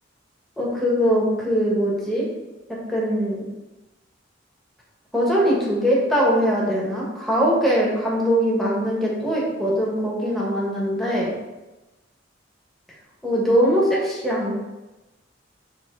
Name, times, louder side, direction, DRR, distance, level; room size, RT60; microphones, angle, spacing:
voice 1, 0.6-2.2 2.9-3.4 5.1-11.3 13.2-14.5, equal, ahead, -5 dB, 1.4 m, -21 dB
7.1 x 3.1 x 4.6 m, 1.1 s
head